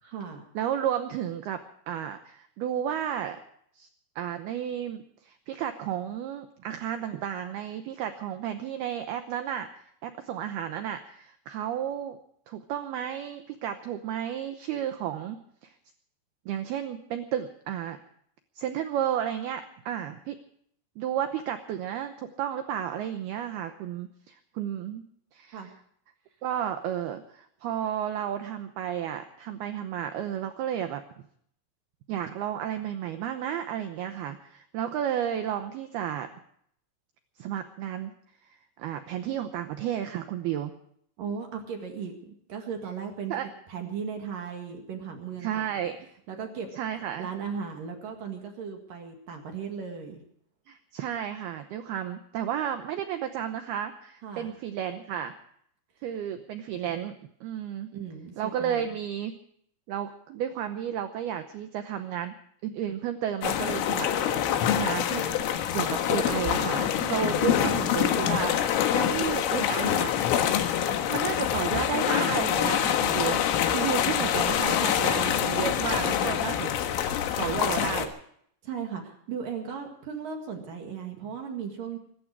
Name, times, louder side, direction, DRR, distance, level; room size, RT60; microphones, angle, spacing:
voice 1, 0.0-0.4 25.5-25.7 41.2-43.3 43.7-45.7 46.3-46.7 47.2-50.2 54.2-54.5 57.9-58.8 67.6-67.9 78.6-82.0, right 6 dB, 55° right, 3 dB, 3.0 m, -36 dB
voice 2, 0.6-3.4 3.7-3.9 4.2-9.7 10.0-12.2 12.5-15.7 16.5-18.0 18.6-20.4 21.0-25.0 25.3-25.7 26.4-31.2 32.1-36.3 37.4-38.1 38.4-40.8 43.3-43.5 45.4-46.0 46.8-47.3 50.7-55.3 56.0-57.1 57.4-57.9 58.4-59.3 59.9-62.3 62.6-65.3 65.7-70.1 71.1-76.7 77.4-78.1, right 10 dB, 85° right, 8 dB, 2.2 m, -32 dB
sound 1, 63.4-78.1, left 10 dB, 80° left, 4.0 m, -26 dB
23.5 x 13.0 x 4.7 m, 0.67 s
omnidirectional pair, 5.8 m